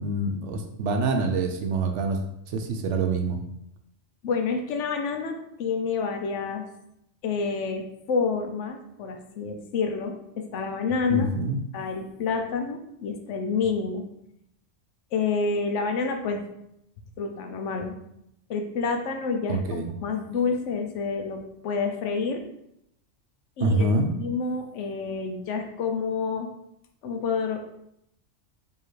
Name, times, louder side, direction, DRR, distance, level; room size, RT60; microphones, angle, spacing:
voice 1, 0.0-2.2 2.5-3.4 11.1-11.6 19.5-19.9 23.6-24.1, right 2 dB, 70° right, 5 dB, 0.8 m, -26 dB
voice 2, 4.2-6.6 7.2-11.3 11.7-14.1 15.1-16.4 17.2-17.9 18.5-22.4 23.6-26.5 27.0-27.6, left 5 dB, 75° left, 5 dB, 0.9 m, -28 dB
4.6 x 2.8 x 3.1 m, 0.78 s
omnidirectional pair, 1.3 m